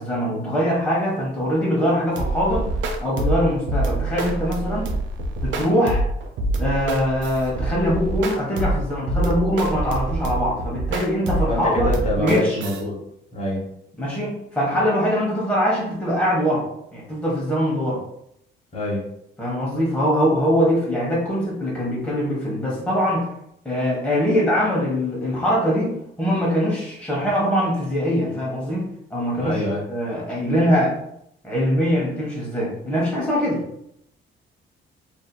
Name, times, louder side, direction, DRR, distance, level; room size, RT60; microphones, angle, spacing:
voice 1, 0.0-2.7 3.0-4.9 5.4-6.1 6.6-11.9 12.2-12.6 14.0-16.6 16.9-18.0 19.4-23.3 23.6-29.6 29.9-30.9 31.4-33.6, equal, 5° left, -6 dB, 0.8 m, -22 dB
sound 1, 2.2-12.8, right 2 dB, 75° right, 0.5 m, -25 dB
voice 2, 11.5-13.0 13.3-13.6 18.7-19.0 29.4-29.8, left 1 dB, 35° left, -3 dB, 1.0 m, -25 dB
2.7 x 2.6 x 2.2 m, 0.75 s
cardioid pair, 90°, 20 cm